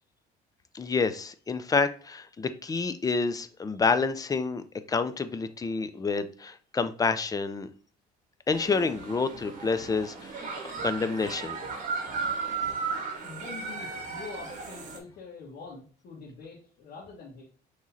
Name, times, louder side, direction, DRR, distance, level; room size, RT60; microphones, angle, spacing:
voice 1, 0.7-7.7 8.5-10.4 10.8-11.6, left 4 dB, 20° left, 11 dB, 0.5 m, -28 dB
sound 1, 8.5-15.0, right 5 dB, 50° right, 1.3 m, -35 dB
voice 2, 13.2-17.4, left 4 dB, 65° left, -4 dB, 1.4 m, -45 dB
5.9 x 3.1 x 2.7 m, 0.43 s
cardioid pair, 110°, 17 cm